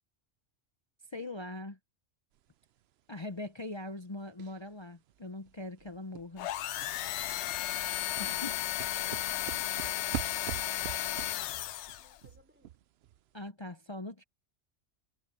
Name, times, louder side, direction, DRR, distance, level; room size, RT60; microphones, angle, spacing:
voice 1, 1.1-1.8 3.1-6.5 8.2-8.5 13.3-14.2, left 2 dB, 25° left, 0.7 m, -41 dB
sound 1, 4.4-4.7 5.1-5.2 5.5-13.2 13.5-13.6, right 12 dB, 65° right, 0.8 m, -44 dB
sound 2, 6.4-12.2, left 13 dB, 75° left, 0.9 m, -34 dB
voice 2, 8.9-12.8, left 1 dB, 10° right, 4.8 m, -63 dB
omnidirectional pair, 1.2 m